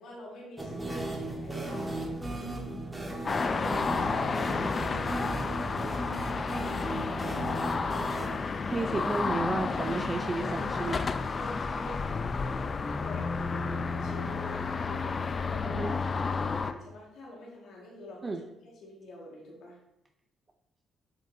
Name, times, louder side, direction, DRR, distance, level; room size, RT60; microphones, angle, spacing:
voice 1, 0.0-2.0 3.4-6.2 10.4-11.0 11.3-12.0 12.9-19.8, left 1 dB, 80° left, -4 dB, 1.7 m, -46 dB
sound 1, 0.6-12.3 12.5-12.7 12.9-13.0 15.1-15.2, right 1 dB, 10° right, 1.5 m, -37 dB
sound 2, 3.3-16.7, left 4 dB, 40° left, 0.4 m, -31 dB
voice 2, 8.7-11.0 15.6-16.0 18.2-18.4, right 3 dB, 30° right, 5 dB, 0.4 m, -32 dB
7.5 x 5.2 x 2.6 m, 0.84 s
cardioid pair, 90°, 0 cm